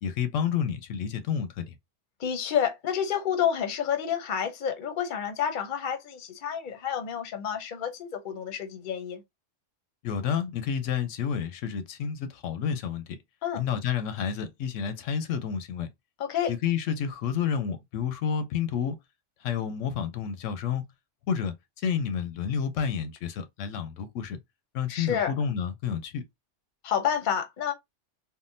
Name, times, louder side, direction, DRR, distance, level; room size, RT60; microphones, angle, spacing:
voice 1, 0.0-1.8 10.0-13.2 13.5-15.9 16.5-19.0 19.4-20.9 21.3-24.4 24.7-26.3, left 7 dB, 90° left, 1.0 m, -30 dB
voice 2, 2.2-9.2 13.4-13.6 16.2-16.5 24.9-25.3 26.8-27.7, left 8 dB, 50° left, 0.7 m, -29 dB
3.6 x 2.1 x 2.5 m
omnidirectional pair, 1.2 m